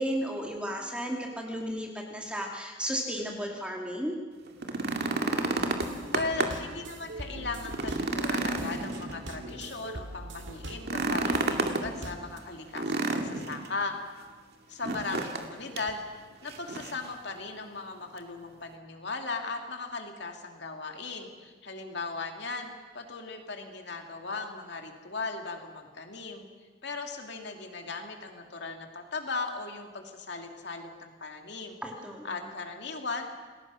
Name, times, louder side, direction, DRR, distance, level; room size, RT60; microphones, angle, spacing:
voice 1, 0.0-4.2 31.8-32.4, equal, 5° right, 0 dB, 2.6 m, -34 dB
sound 1, 4.5-6.7 7.1-7.2 7.6-9.5 10.8-11.9 12.8-13.7 14.8-15.5 15.8-15.9 16.5-17.1 18.2-18.3, right 2 dB, 55° right, 2.2 m, -30 dB
voice 2, 5.0-5.9 6.1-13.9 14.7-16.0 16.4-26.4 26.8-31.8 32.2-33.3, left 3 dB, 60° left, 3 dB, 2.6 m, -38 dB
sound 2, 5.6-12.4, right 1 dB, 70° right, 2.3 m, -43 dB
29.0 x 20.5 x 6.3 m, 1.4 s
head